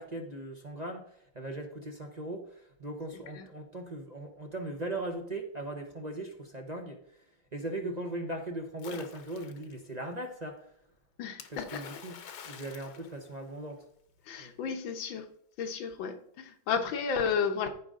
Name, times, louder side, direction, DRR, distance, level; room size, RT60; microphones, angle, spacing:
voice 1, 0.0-7.3 7.5-10.7 11.5-13.8 14.4-14.6, right 1 dB, 35° right, 2 dB, 0.7 m, -39 dB
Splash splatter, 8.8-9.7 11.4-13.8, left 7 dB, 60° left, 1.4 m, -47 dB
voice 2, 11.2-11.8 14.3-15.3 15.6-17.7, left 6 dB, 80° left, 7 dB, 1.8 m, -32 dB
14.5 x 5.1 x 3.7 m, 0.68 s
omnidirectional pair, 2.1 m